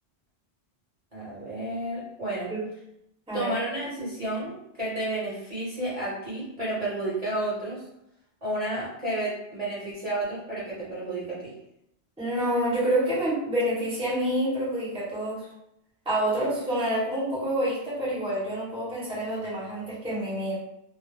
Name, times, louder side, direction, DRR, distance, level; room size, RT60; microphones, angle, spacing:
voice 1, 1.1-2.5 3.3-7.8 8.4-11.5, right 1 dB, 40° right, -8 dB, 0.9 m, -31 dB
voice 2, 12.2-15.5 16.0-20.6, right 1 dB, 5° right, -8 dB, 0.8 m, -27 dB
2.3 x 2.0 x 3.2 m, 0.83 s
omnidirectional pair, 1.1 m